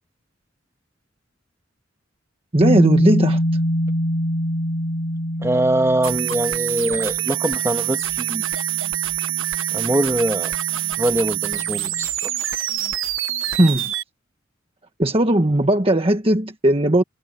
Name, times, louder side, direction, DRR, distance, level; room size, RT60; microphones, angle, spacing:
voice 1, 2.5-3.4 13.6-13.9 15.0-17.0, right 1 dB, 30° right, 1.4 m, -17 dB
sound 1, 2.6-12.1, equal, 60° left, 6.1 m, -26 dB
voice 2, 5.4-8.4 9.7-10.5 11.0-12.1, right 1 dB, 15° right, 2.1 m, -22 dB
sound 2, 6.0-14.0, right 14 dB, 80° right, 1.7 m, -25 dB
head